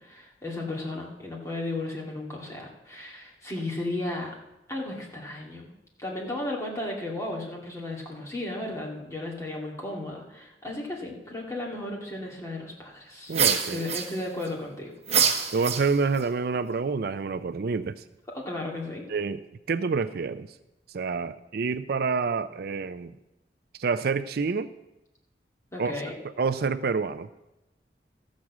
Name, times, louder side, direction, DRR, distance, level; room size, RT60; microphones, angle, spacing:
voice 1, 0.0-4.4 4.7-5.7 6.0-13.4 13.7-14.9 18.3-19.1 25.7-26.2, left 2 dB, 20° left, -2 dB, 2.3 m, -34 dB
sound 1, 13.3-14.5 15.1-16.2, right 7 dB, 35° right, 1.1 m, -25 dB
voice 2, 13.3-13.8 15.5-18.0 19.1-19.4 19.7-20.5 20.9-23.1 23.8-24.7 25.8-26.0 26.4-27.3, right 4 dB, 60° right, 12 dB, 0.4 m, -27 dB
13.5 x 6.3 x 7.3 m, 0.94 s
head